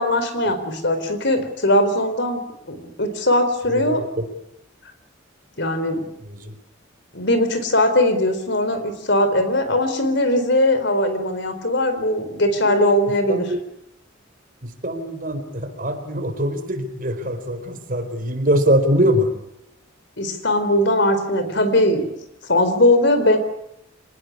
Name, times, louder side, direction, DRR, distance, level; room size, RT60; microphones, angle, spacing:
voice 1, 0.0-2.4 2.7-4.1 5.6-6.1 7.1-13.5 20.2-22.1 22.5-23.4, left 1 dB, 60° left, 10 dB, 4.2 m, -20 dB
voice 2, 3.7-4.0 6.2-6.5 12.6-13.0 13.3-13.6 14.6-19.3, equal, 45° right, 8 dB, 4.4 m, -23 dB
26.0 x 19.5 x 9.7 m, 0.81 s
head